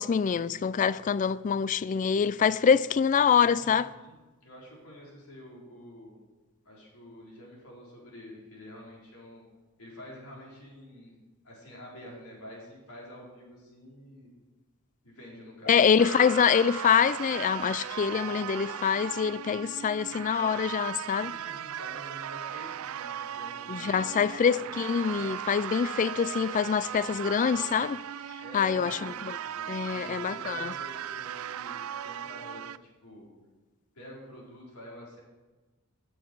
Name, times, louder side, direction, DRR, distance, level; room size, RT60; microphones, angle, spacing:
voice 1, 0.0-3.9 15.7-21.3 23.7-28.0 28.5-29.1 29.7-30.7, left 7 dB, 35° left, 0.3 m, -25 dB
voice 2, 3.5-4.2 4.4-6.2 6.6-9.4 9.8-14.3 15.0-15.9 21.2-24.6 28.4-31.7 32.0-33.3 33.9-35.2, equal, 90° left, 4.4 m, -47 dB
sound 1, 16.0-32.8, right 9 dB, 70° right, 0.3 m, -37 dB
16.5 x 7.9 x 4.7 m
head